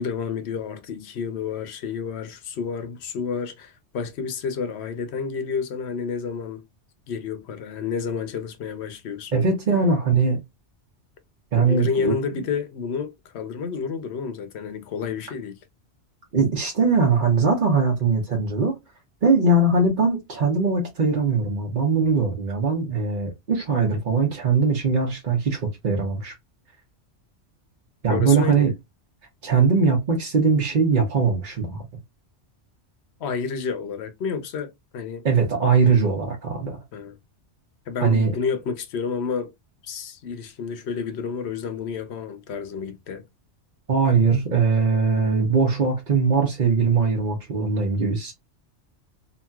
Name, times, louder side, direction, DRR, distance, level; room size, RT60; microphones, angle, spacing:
voice 1, 0.0-6.6 7.1-9.5 11.5-15.6 28.1-28.7 33.2-35.3 36.9-37.2 37.9-39.5 39.8-43.2, left 6 dB, 70° left, 0.9 m, -30 dB
voice 2, 9.3-10.4 11.5-12.1 16.3-18.7 19.2-26.3 28.0-28.7 29.4-31.8 35.2-36.8 38.0-38.3 43.9-48.3, right 4 dB, 45° right, 0.9 m, -21 dB
2.9 x 2.7 x 2.3 m
omnidirectional pair, 1.2 m